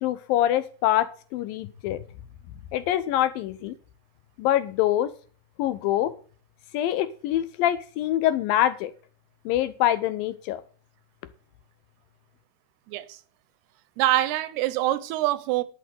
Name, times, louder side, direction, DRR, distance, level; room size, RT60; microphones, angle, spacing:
voice 1, 0.0-2.0 2.7-3.7 4.4-5.1 5.6-6.1 6.7-8.9 9.5-10.6, left 12 dB, 80° left, 2.2 m, -25 dB
voice 2, 12.9-13.2 14.0-15.6, right 15 dB, 90° right, 2.8 m, -25 dB
11.5 x 6.0 x 7.7 m
omnidirectional pair, 4.5 m